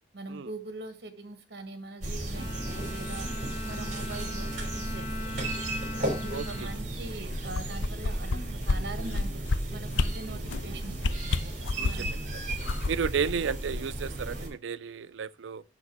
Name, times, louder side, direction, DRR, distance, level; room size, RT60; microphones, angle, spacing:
voice 1, 0.1-3.3 3.7-5.5 6.2-12.1, right 2 dB, 60° right, 1.4 m, -42 dB
sound 1, 2.0-14.5, right 1 dB, 40° right, 2.8 m, -35 dB
Bowed string instrument, 2.3-7.8, left 1 dB, 25° left, 1.9 m, -40 dB
voice 2, 6.3-6.7 10.2-10.4 11.8-12.4 12.9-15.6, right 6 dB, 90° right, 0.4 m, -33 dB
sound 2, 7.3-8.4 8.7-8.8 9.1-9.6 9.9-10.1 10.5-10.7 11.0-12.1 12.5-14.1 14.4-14.5, left 3 dB, 90° left, 0.5 m, -28 dB
6.8 x 6.6 x 6.2 m
head